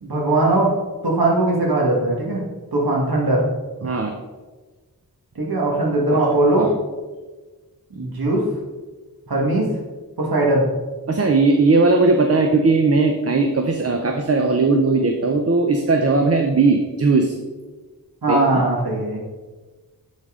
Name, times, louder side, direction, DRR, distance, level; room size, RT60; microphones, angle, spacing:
voice 1, 0.0-0.7 1.0-2.4 2.7-3.4 5.3-6.7 7.9-8.4 9.3-9.6 10.2-10.6 18.2-19.2, right 2 dB, 70° right, -3 dB, 1.6 m, -19 dB
voice 2, 3.8-4.1 6.6-6.7 11.1-17.3 18.3-18.6, right 3 dB, 40° right, 4 dB, 0.6 m, -18 dB
9.5 x 4.1 x 3.7 m, 1.3 s
wide cardioid pair, 55°, 38 cm